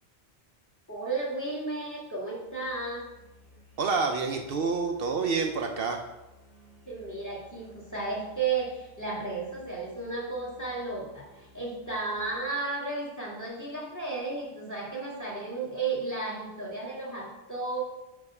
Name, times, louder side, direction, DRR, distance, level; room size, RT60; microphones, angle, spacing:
voice 1, 0.9-3.0 6.9-17.8, right 3 dB, 15° left, -4 dB, 1.8 m, -33 dB
Musical instrument, 2.4-12.6, left 1 dB, 60° left, 1.9 m, -57 dB
voice 2, 3.8-6.0, right 4 dB, 65° right, 4 dB, 0.8 m, -28 dB
5.7 x 5.3 x 4.7 m, 1.0 s
omnidirectional pair, 1.1 m